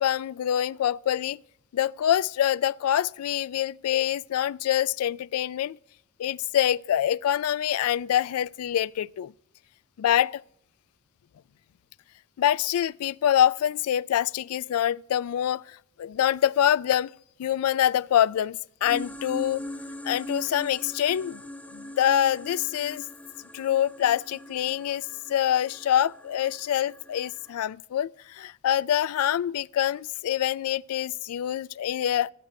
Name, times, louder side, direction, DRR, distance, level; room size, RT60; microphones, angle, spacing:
voice 1, 0.0-1.4 1.7-5.8 6.2-9.3 10.0-10.4 12.4-17.1 17.4-19.6 20.0-21.5 21.7-23.0 23.5-25.0 25.3-32.3, left 10 dB, 80° left, 0.3 m, -25 dB
sound 1, 18.9-27.6, left 1 dB, 5° left, 0.7 m, -41 dB
17.0 x 8.1 x 2.7 m
head